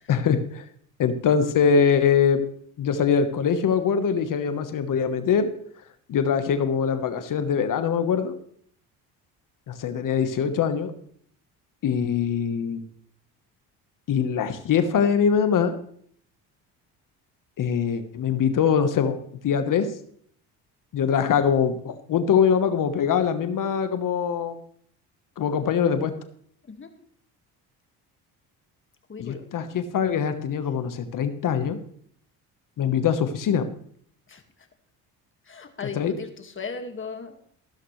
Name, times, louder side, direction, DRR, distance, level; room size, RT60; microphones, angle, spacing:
voice 1, 0.1-0.6 1.0-2.4 2.8-5.5 6.1-8.4 9.7-10.9 11.8-12.8 14.1-15.8 17.6-19.9 20.9-24.6 25.4-26.1 29.2-31.8 32.8-33.6 36.0-36.1, left 7 dB, 55° left, 9 dB, 1.2 m, -23 dB
voice 2, 29.1-29.4 34.3-34.4 35.5-37.3, left 5 dB, 30° left, 6 dB, 1.9 m, -37 dB
14.5 x 12.5 x 3.2 m, 0.63 s
supercardioid pair, 85°, 40 cm